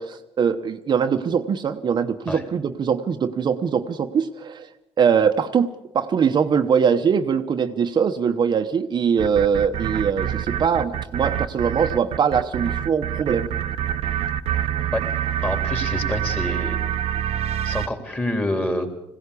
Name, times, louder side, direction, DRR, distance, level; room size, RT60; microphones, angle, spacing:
voice 1, 0.0-4.7 5.0-13.5, right 7 dB, 45° right, 6 dB, 0.9 m, -22 dB
sound 1, 9.2-17.9, right 10 dB, 80° right, 0.8 m, -26 dB
voice 2, 15.4-16.8 17.6-18.9, left 1 dB, 15° left, 5 dB, 3.7 m, -27 dB
20.5 x 17.0 x 8.4 m, 0.92 s
cardioid pair, 125°, 10 cm